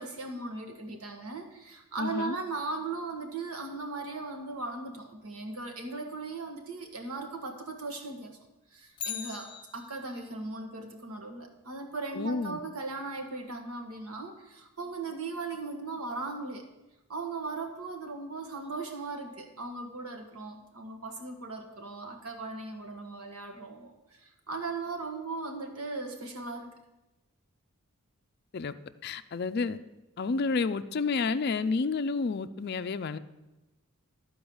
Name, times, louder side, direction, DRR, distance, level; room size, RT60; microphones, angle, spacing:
voice 1, 0.0-8.4 8.7-16.6 17.1-26.7, right 3 dB, 80° right, 4 dB, 1.6 m, -38 dB
voice 2, 2.0-2.4 12.2-12.6 28.5-28.7 29.0-29.8 30.2-33.2, left 4 dB, 45° left, 11 dB, 0.4 m, -30 dB
Bicycle, 8.9-10.3 18.6-18.7, left 8 dB, 20° left, 1.0 m, -40 dB
13.0 x 4.7 x 7.0 m, 1.0 s
head